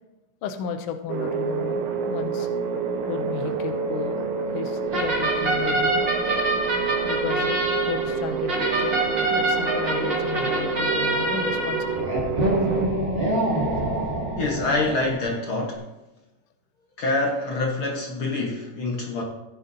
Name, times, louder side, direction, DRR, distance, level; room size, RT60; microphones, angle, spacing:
voice 1, 0.4-2.5 3.0-4.2 4.5-6.1 7.0-7.6 7.9-9.0 9.3-12.1, left 7 dB, 70° left, 7 dB, 1.4 m, -33 dB
sound 1, 1.1-12.9, right 6 dB, 75° right, 2.4 m, -28 dB
sound 2, 4.9-15.3, right 1 dB, 20° right, 2.2 m, -26 dB
voice 2, 14.4-15.8 17.0-19.2, left 2 dB, 55° left, -1 dB, 1.7 m, -26 dB
15.5 x 10.5 x 2.7 m, 1.0 s
omnidirectional pair, 3.6 m